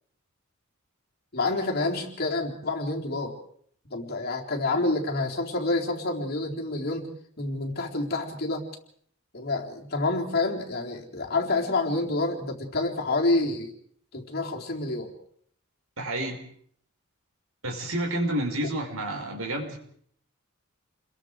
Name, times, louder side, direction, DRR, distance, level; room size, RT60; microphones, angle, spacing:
voice 1, 1.3-3.4 3.9-7.1 7.4-8.7 9.3-13.7 14.1-15.1 18.6-18.7, left 2 dB, 50° left, -1 dB, 3.9 m, -28 dB
voice 2, 16.0-16.4 17.6-19.8, right 1 dB, 90° right, 3 dB, 5.3 m, -29 dB
29.0 x 22.0 x 4.9 m, 0.63 s
head